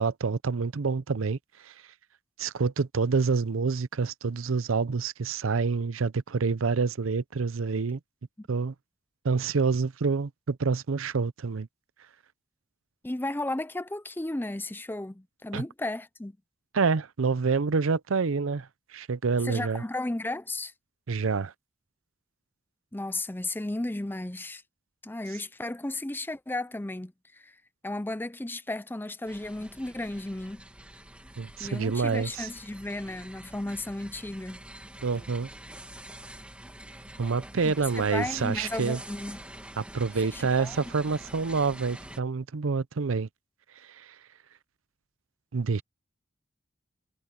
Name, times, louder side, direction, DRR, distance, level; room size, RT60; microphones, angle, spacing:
voice 1, 0.0-1.4 1.6-1.7 2.4-8.0 8.5-8.7 9.2-11.7 15.5-15.6 16.7-19.8 21.1-21.5 31.4-32.5 35.0-35.5 37.2-39.0 39.8-43.3 43.9-44.1 45.5-45.8, right 4 dB, 80° right, 0.6 m, -27 dB
voice 2, 13.0-16.4 19.4-20.7 22.9-24.6 25.0-27.5 27.8-30.6 31.6-34.6 37.6-39.4 40.3-40.8, left 2 dB, 10° left, 0.5 m, -34 dB
sound 1, 29.3-42.2, right 1 dB, 5° right, 1.9 m, -46 dB
head